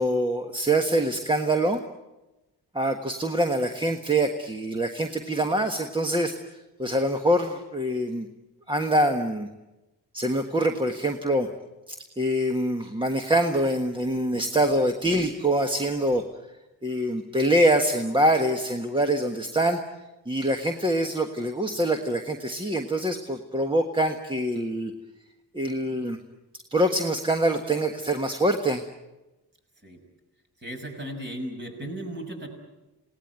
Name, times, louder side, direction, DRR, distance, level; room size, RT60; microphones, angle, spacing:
voice 1, 0.0-1.8 2.7-8.3 8.7-9.5 10.1-11.5 11.9-16.2 16.8-19.8 20.2-24.9 25.5-26.2 26.7-28.8, right 1 dB, 10° right, 5 dB, 1.4 m, -25 dB
voice 2, 30.6-32.5, right 1 dB, 25° right, 3 dB, 6.4 m, -36 dB
28.5 x 18.5 x 9.5 m, 1.0 s
wide cardioid pair, 160°, 39 cm